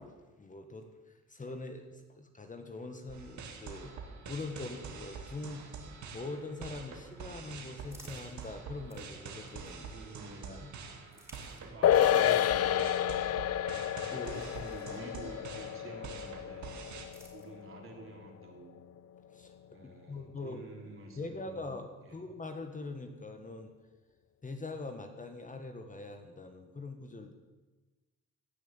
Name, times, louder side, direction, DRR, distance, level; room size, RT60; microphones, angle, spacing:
voice 1, 0.0-3.9 4.3-5.6 6.1-9.9 10.5-10.7 11.1-11.2 14.1-14.6 19.3-19.5 20.1-23.7 24.4-27.3, left 3 dB, 25° left, 6 dB, 1.6 m, -43 dB
sound 1, 3.1-17.1, right 5 dB, 70° right, 2.3 m, -46 dB
sound 2, 7.9-10.1 10.9-15.5 16.5-18.0, right 1 dB, 10° right, 4.1 m, -61 dB
voice 2, 9.8-10.6 11.6-13.0 13.7-16.7 17.3-18.7 19.7-21.7 22.1-22.2, right 3 dB, 45° right, 1 dB, 3.6 m, -49 dB
sound 3, 11.8-18.5 18.8-18.9, left 11 dB, 55° left, 0.7 m, -30 dB
17.0 x 6.2 x 8.9 m, 1.2 s
cardioid pair, 90°, 30 cm